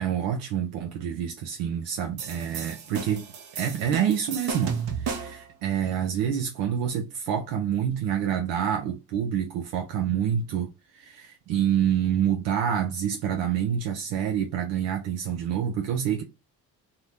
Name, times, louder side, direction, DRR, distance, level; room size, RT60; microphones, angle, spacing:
voice 1, 0.0-3.2 3.6-16.2, right 9 dB, 85° right, 0.6 m, -27 dB
sound 1, 2.2-5.5, right 6 dB, 50° right, 0.9 m, -33 dB
2.6 x 2.0 x 2.8 m
hypercardioid pair, 50°, 48 cm